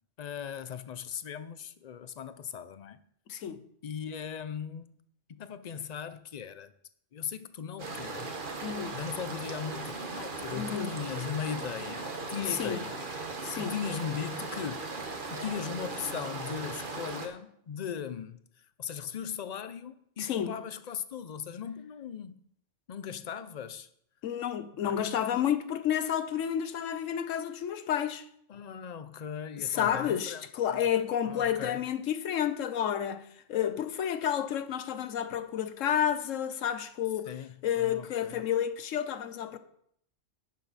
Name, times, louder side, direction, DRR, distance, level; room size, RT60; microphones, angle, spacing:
voice 1, 0.2-3.0 3.8-4.9 5.3-6.7 7.1-8.3 8.9-13.0 13.5-14.8 15.3-18.4 18.8-22.4 22.9-23.9 24.8-25.1 28.5-30.4 30.7-30.8 31.2-31.8 37.3-38.4, left 8 dB, 50° left, 0.5 m, -38 dB
voice 2, 3.3-3.6 8.6-9.0 10.5-10.9 12.5-12.8 13.4-13.8 20.2-20.6 24.2-28.3 29.6-37.3 37.6-39.6, left 9 dB, 85° left, 1.1 m, -30 dB
sound 1, 7.8-17.3, right 3 dB, 45° right, 1.4 m, -38 dB
10.5 x 8.3 x 4.1 m
omnidirectional pair, 1.3 m